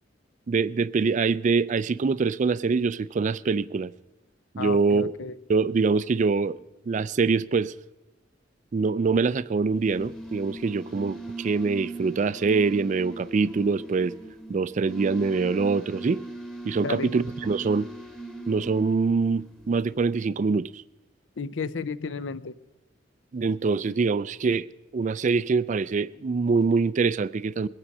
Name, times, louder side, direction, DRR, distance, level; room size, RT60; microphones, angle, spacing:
voice 1, 0.5-3.9 4.5-5.1 5.5-6.6 6.9-7.7 8.7-14.1 14.5-16.2 16.6-17.9 18.5-20.8 23.3-24.7 24.9-27.7, right 4 dB, 40° right, 0.4 m, -24 dB
voice 2, 4.6-5.4 16.8-17.1 21.4-22.5, left 4 dB, 80° left, 0.6 m, -32 dB
sound 1, 9.7-20.2, right 2 dB, 5° left, 1.0 m, -40 dB
21.5 x 8.8 x 5.4 m
head